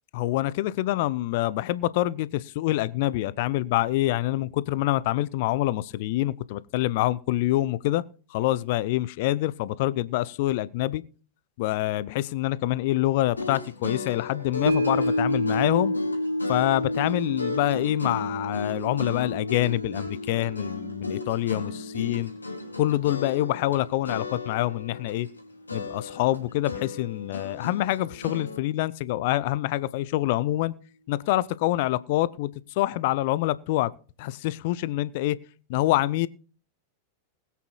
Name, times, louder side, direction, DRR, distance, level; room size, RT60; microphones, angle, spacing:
voice 1, 0.1-8.0 8.3-11.0 11.6-15.9 16.5-22.3 22.8-25.3 25.7-30.7 31.1-32.5 32.8-33.9 34.2-35.4 35.7-36.3, left 16 dB, 50° left, 0.6 m, -26 dB
sound 1, 13.3-23.8 24.1-25.4 25.7-28.6, left 3 dB, 80° left, 2.1 m, -36 dB
sound 2, 14.7-25.0 25.4-25.5, equal, 75° right, 1.4 m, -31 dB
20.5 x 8.3 x 2.4 m
figure-of-eight pair, 90°, 0 cm